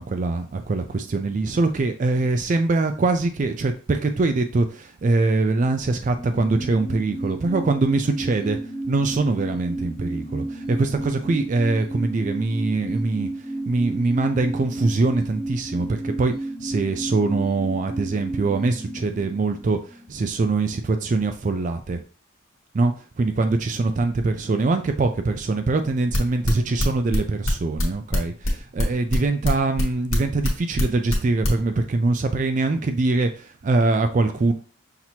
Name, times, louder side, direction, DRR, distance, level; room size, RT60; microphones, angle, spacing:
voice 1, 0.0-8.6 8.9-13.3 13.7-16.3 16.6-19.8 20.1-22.0 22.7-34.5, right 3 dB, 40° right, 8 dB, 0.3 m, -23 dB
sound 1, 5.7-20.8 21.1-21.2, right 1 dB, ahead, 0.9 m, -33 dB
sound 2, 26.1-31.6, left 1 dB, 90° left, 1.3 m, -23 dB
5.8 x 2.9 x 2.7 m, 0.38 s
head